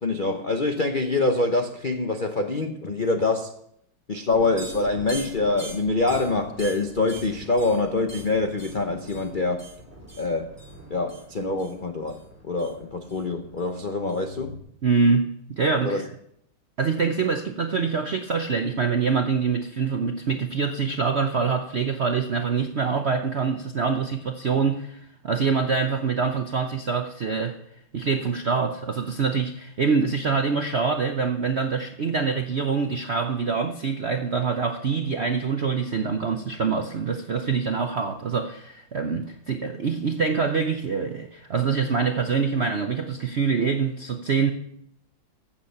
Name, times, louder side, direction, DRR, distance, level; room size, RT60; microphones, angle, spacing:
voice 1, 0.0-3.5 4.1-9.6 10.2-10.6 10.9-14.6 15.8-16.1, left 3 dB, 65° left, 5 dB, 0.5 m, -25 dB
sound 1, 4.3-14.6, right 1 dB, 5° right, 2.2 m, -43 dB
voice 2, 14.8-16.0 16.8-27.6 27.9-44.5, right 5 dB, 65° right, 5 dB, 0.6 m, -25 dB
15.0 x 7.6 x 5.6 m, 0.73 s
omnidirectional pair, 2.2 m